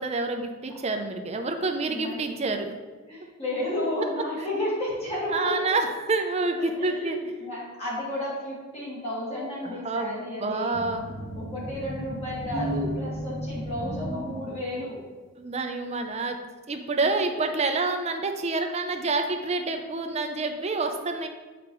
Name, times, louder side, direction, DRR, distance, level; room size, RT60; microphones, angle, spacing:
voice 1, 0.0-2.7 5.3-7.2 9.6-11.1 15.4-16.4 16.7-21.3, right 3 dB, 30° right, 5 dB, 0.5 m, -28 dB
voice 2, 1.9-2.2 3.1-5.7 6.6-10.8 11.4-15.0 17.0-17.3, left 1 dB, 30° left, -7 dB, 1.8 m, -32 dB
sound 1, 10.7-14.9, equal, 60° left, 1.0 m, -34 dB
7.6 x 4.9 x 3.0 m, 1.3 s
head